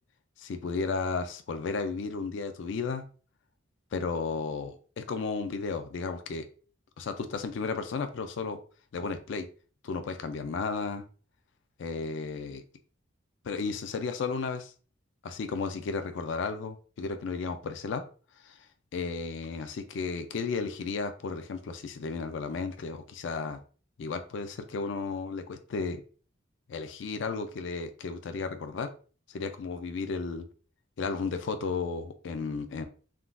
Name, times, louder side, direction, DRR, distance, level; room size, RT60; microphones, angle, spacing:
voice 1, 0.4-3.0 3.9-6.5 7.0-8.6 8.9-9.5 9.8-11.0 11.8-12.6 13.4-14.7 15.2-18.0 18.4-18.6 18.9-23.6 24.0-26.0 26.7-28.9 29.3-30.5 31.0-32.8, left 4 dB, 60° left, 0.4 m, -33 dB
3.6 x 2.3 x 2.4 m
head